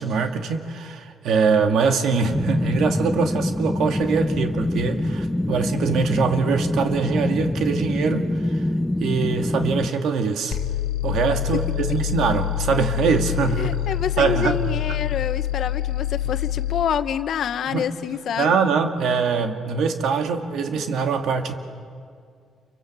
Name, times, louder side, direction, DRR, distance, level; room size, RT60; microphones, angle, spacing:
voice 1, 0.0-8.6 9.0-10.6 11.0-13.7 14.2-14.6 14.9-15.0 17.7-17.8 18.4-21.5, right 5 dB, 75° right, 5 dB, 2.2 m, -23 dB
sound 1, 2.3-9.9, left 1 dB, 10° left, 0.7 m, -25 dB
sound 2, 10.5-16.9, left 13 dB, 85° left, 1.4 m, -26 dB
voice 2, 13.5-18.6, left 8 dB, 65° left, 11 dB, 1.1 m, -27 dB
29.0 x 24.5 x 7.6 m, 2.2 s
cardioid pair, 90°, 0 cm